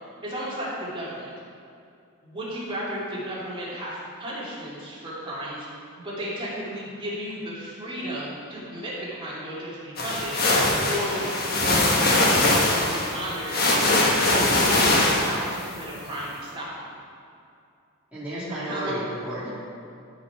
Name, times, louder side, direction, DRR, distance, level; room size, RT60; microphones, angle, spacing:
voice 1, 0.2-1.3 2.2-10.4 10.9-13.9 14.2-16.9 18.5-18.9, equal, 25° right, -8 dB, 2.6 m, -34 dB
sound 1, 10.0-15.6, left 2 dB, 45° left, 1.3 m, -21 dB
voice 2, 18.1-19.5, right 1 dB, 5° right, -12 dB, 2.0 m, -32 dB
13.0 x 5.5 x 4.8 m, 2.5 s
head